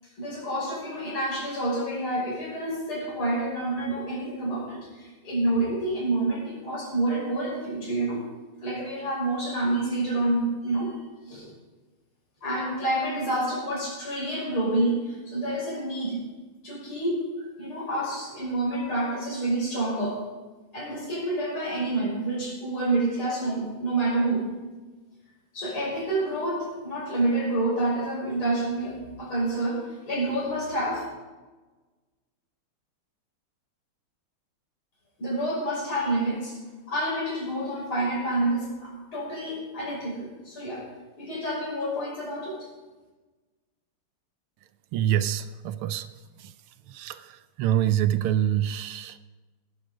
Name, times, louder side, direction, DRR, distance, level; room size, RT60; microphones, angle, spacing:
voice 1, 0.2-8.2 8.6-10.9 11.3-11.5 12.4-16.2 16.6-20.2 20.7-24.4 25.5-31.1 35.2-36.6 36.9-40.8 41.2-42.6, right 2 dB, 75° left, -4 dB, 6.7 m, -28 dB
voice 2, 44.9-46.1 46.9-47.2 47.6-49.2, right 11 dB, 80° right, 12 dB, 1.5 m, -25 dB
18.0 x 11.5 x 5.1 m, 1.2 s
omnidirectional pair, 2.3 m